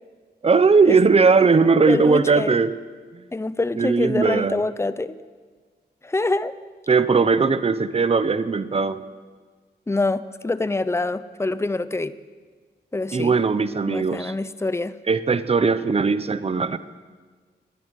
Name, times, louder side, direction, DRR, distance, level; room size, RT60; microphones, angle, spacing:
voice 1, 0.4-2.7 3.1-3.2 3.8-4.6 6.9-9.0 13.1-14.3 15.1-16.8, right 4 dB, 35° right, 13 dB, 0.9 m, -19 dB
voice 2, 1.9-2.5 3.3-5.2 6.0-6.5 9.9-12.1 12.9-13.4 13.9-14.9, left 2 dB, 15° left, 14 dB, 0.7 m, -25 dB
22.5 x 18.5 x 8.2 m, 1.5 s
wide cardioid pair, 175°, 18 cm